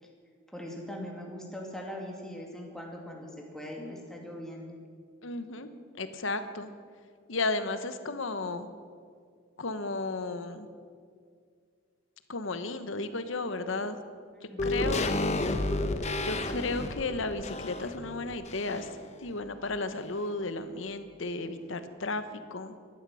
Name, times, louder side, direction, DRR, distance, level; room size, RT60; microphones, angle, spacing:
voice 1, 0.5-4.8 14.5-15.0, left 1 dB, 5° left, -1 dB, 2.3 m, -41 dB
voice 2, 5.2-6.7 7.3-8.7 9.6-10.7 12.3-14.0 14.6-15.1 16.2-22.2 22.5-22.7, left 3 dB, 75° left, 10 dB, 1.1 m, -34 dB
sound 1, 14.6-19.1 19.4-19.5, left 2 dB, 35° left, 0.9 m, -31 dB
15.5 x 12.0 x 6.3 m, 2.1 s
head